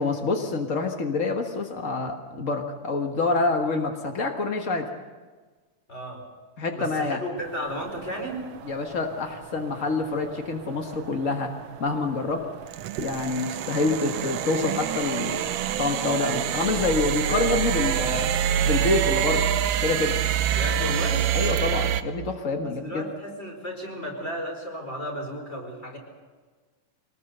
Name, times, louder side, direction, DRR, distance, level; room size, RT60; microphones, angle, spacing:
voice 1, 0.0-4.9 6.6-7.2 8.7-11.5 11.8-12.4 13.0-15.4 15.8-18.3 18.6-19.5 19.8-20.2 21.3-23.0, left 3 dB, 70° left, 3 dB, 0.7 m, -27 dB
voice 2, 5.9-6.2 6.7-8.4 20.5-21.2 22.6-26.0, equal, 15° left, 1 dB, 4.6 m, -34 dB
sound 1, 7.4-22.0, right 10 dB, 85° right, 1.4 m, -26 dB
24.0 x 19.5 x 6.8 m, 1.4 s
omnidirectional pair, 3.9 m